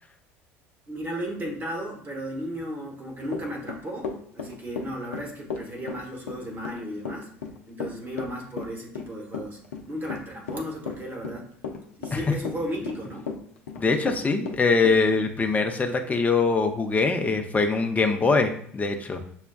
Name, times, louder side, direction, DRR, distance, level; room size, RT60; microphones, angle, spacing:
voice 1, 0.9-7.3 7.7-9.6 9.9-11.5 12.0-13.3, equal, 30° right, -1 dB, 1.2 m, -34 dB
Run / Walk footsteps, 3.3-15.0, left 5 dB, 75° left, 0.5 m, -34 dB
voice 2, 13.8-19.2, left 4 dB, 20° left, 5 dB, 0.6 m, -23 dB
6.3 x 2.2 x 2.3 m, 0.62 s
figure-of-eight pair, 65°, 7 cm